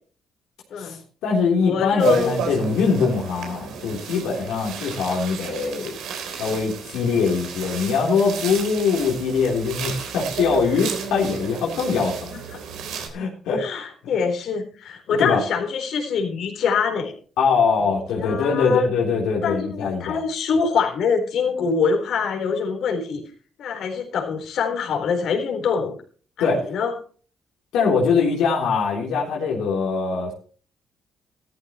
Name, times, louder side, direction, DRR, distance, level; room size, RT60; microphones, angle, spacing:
voice 1, 0.8-5.9 6.3-12.4 13.1-13.8 15.1-15.4 17.4-20.2 26.4-26.7 27.7-30.3, left 5 dB, 90° left, -3 dB, 3.6 m, -22 dB
voice 2, 1.6-2.3 12.5-12.6 13.6-17.1 17.9-18.9 19.4-23.2 23.6-25.9 26.4-26.9, left 6 dB, 70° left, 2 dB, 4.2 m, -24 dB
sound 1, 2.0-13.1, right 6 dB, 85° right, 3.8 m, -32 dB
14.5 x 13.5 x 3.1 m, 0.41 s
cardioid pair, 90°, 0 cm